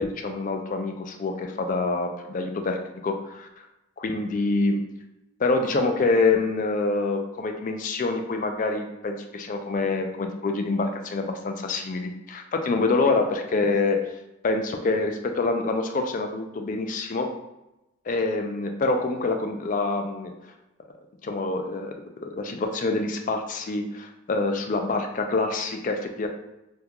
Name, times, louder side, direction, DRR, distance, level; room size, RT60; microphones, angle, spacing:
voice 1, 0.0-3.7 4.0-4.8 5.4-14.0 14.4-17.3 18.1-20.3 21.2-21.9 22.2-26.3, left 3 dB, 40° left, 5 dB, 0.3 m, -26 dB
3.6 x 2.3 x 2.9 m, 0.94 s
head